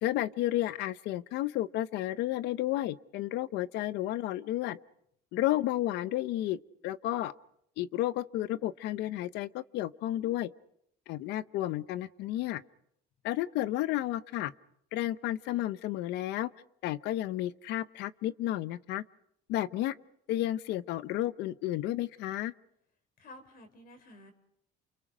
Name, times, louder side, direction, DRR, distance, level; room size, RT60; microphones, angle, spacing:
voice 1, 0.0-4.8 5.3-6.6 6.8-7.3 7.8-10.5 11.1-12.6 13.2-14.5 14.9-16.5 16.8-19.0 19.5-19.9 20.3-22.5, left 14 dB, 90° left, 15 dB, 0.9 m, -32 dB
voice 2, 23.2-24.3, left 1 dB, 60° left, 6 dB, 6.5 m, -52 dB
29.0 x 29.0 x 5.2 m, 0.73 s
cardioid pair, 110°, 17 cm